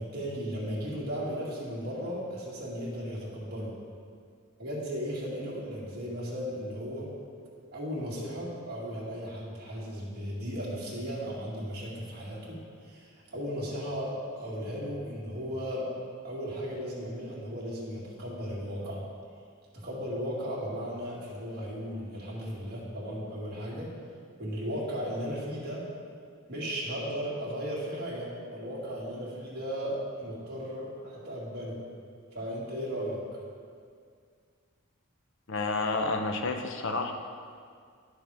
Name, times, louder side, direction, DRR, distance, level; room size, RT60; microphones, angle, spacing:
voice 1, 0.0-3.7 4.6-7.1 7.7-15.9 16.2-19.0 19.7-23.9 24.4-25.9 26.5-31.8 32.3-33.2, equal, 50° right, -6 dB, 2.0 m, -36 dB
voice 2, 35.5-37.1, left 3 dB, 60° left, 5 dB, 0.6 m, -30 dB
10.5 x 6.2 x 3.4 m, 2.1 s
head